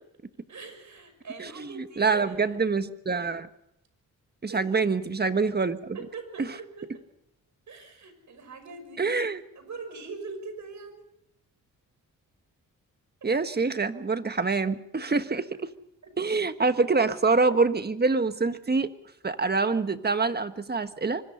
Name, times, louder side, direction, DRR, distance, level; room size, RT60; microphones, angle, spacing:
voice 1, 0.5-2.5 4.5-4.6 5.9-6.9 7.7-9.3 9.6-11.0 16.0-16.1, right 4 dB, 60° right, 8 dB, 6.0 m, -42 dB
voice 2, 1.4-3.5 4.4-6.0 9.0-9.4 13.2-15.7 16.2-18.9 19.2-21.2, right 4 dB, 30° right, 10 dB, 1.4 m, -26 dB
25.0 x 21.0 x 5.6 m, 0.81 s
cardioid pair, 85°, 34 cm